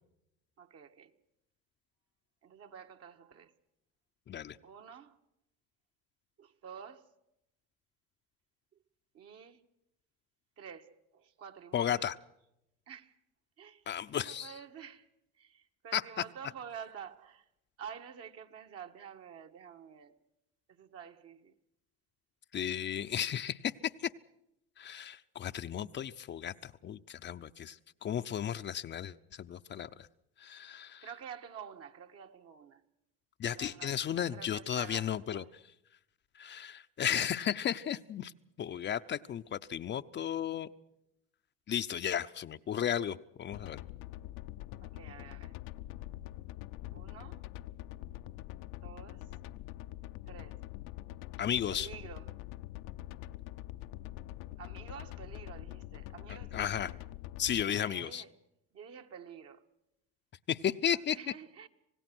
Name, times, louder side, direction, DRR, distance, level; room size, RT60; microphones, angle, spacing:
voice 1, 0.6-1.2 2.4-3.5 4.6-5.2 6.4-7.1 9.1-9.7 10.6-12.1 12.9-13.1 13.6-13.9 14.2-15.1 15.4-17.5 17.8-20.2 20.7-21.6 31.0-32.8 33.5-35.5 44.8-45.5 46.9-47.4 48.8-49.3 50.3-50.7 51.7-52.4 54.6-56.9 57.7-58.4 58.7-59.7 60.7-61.7, right 7 dB, 50° right, 1.7 m, -49 dB
voice 2, 11.7-12.2 13.9-14.5 15.9-16.0 22.5-23.7 24.0-24.1 24.8-27.8 28.0-29.9 30.4-31.1 33.4-35.4 36.4-38.3 38.6-40.7 41.7-43.8 51.4-51.9 56.5-56.9 57.4-58.2 60.5-61.2, left 9 dB, 35° left, 0.7 m, -34 dB
sound 1, 43.5-57.6, left 15 dB, 70° left, 0.8 m, -45 dB
26.5 x 18.0 x 6.2 m
supercardioid pair, 85°, 31 cm